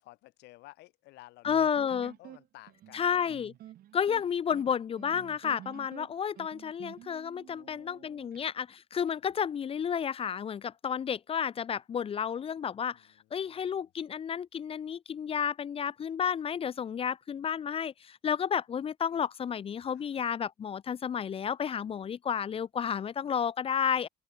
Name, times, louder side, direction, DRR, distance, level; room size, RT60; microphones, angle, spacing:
voice 1, 0.0-3.3 7.5-8.3 12.9-13.9 19.9-20.1, left 19 dB, 85° left, 1.7 m, -55 dB
voice 2, 1.4-2.1 2.9-3.5 3.9-13.0 13.3-24.1, left 7 dB, 35° left, 0.5 m, -31 dB
sound 1, 1.5-8.4, right 13 dB, 60° right, 1.5 m, -51 dB
cardioid pair, 110°, 17 cm